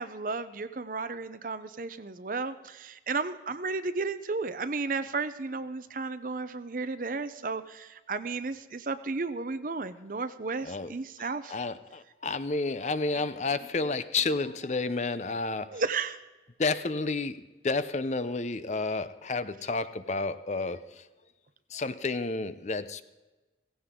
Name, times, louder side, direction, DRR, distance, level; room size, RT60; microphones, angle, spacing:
voice 1, 0.0-11.5 15.7-16.2, right 4 dB, 45° right, 12 dB, 0.7 m, -33 dB
voice 2, 10.6-10.9 11.5-15.8 16.6-21.0 21.7-23.0, left 3 dB, 40° left, 13 dB, 0.6 m, -31 dB
17.0 x 15.5 x 3.7 m, 1.1 s
head